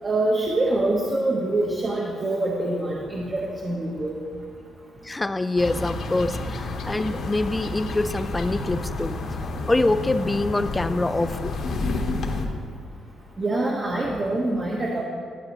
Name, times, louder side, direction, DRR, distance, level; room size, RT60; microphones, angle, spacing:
voice 1, 0.0-4.2 8.5-8.6 13.4-15.0, right 2 dB, 35° right, -3 dB, 1.0 m, -25 dB
voice 2, 5.0-9.2 9.7-11.5, left 2 dB, 15° left, 12 dB, 0.4 m, -25 dB
sound 1, 5.6-12.5, left 2 dB, 65° left, 1.1 m, -30 dB
11.5 x 8.3 x 3.0 m, 2.1 s
cardioid pair, 90°, 0 cm